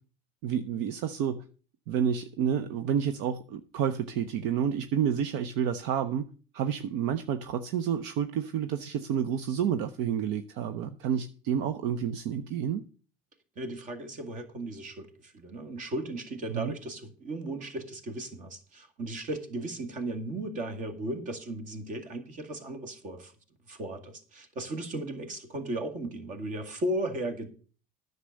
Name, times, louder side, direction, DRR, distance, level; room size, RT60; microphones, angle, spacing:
voice 1, 0.4-1.4 1.9-6.3 6.5-12.8 16.5-16.7, right 8 dB, 65° right, 10 dB, 0.7 m, -29 dB
voice 2, 13.6-23.3 23.7-27.5, right 1 dB, 40° right, 8 dB, 2.0 m, -36 dB
10.0 x 6.7 x 6.3 m, 0.40 s
supercardioid pair, 125°, 20 cm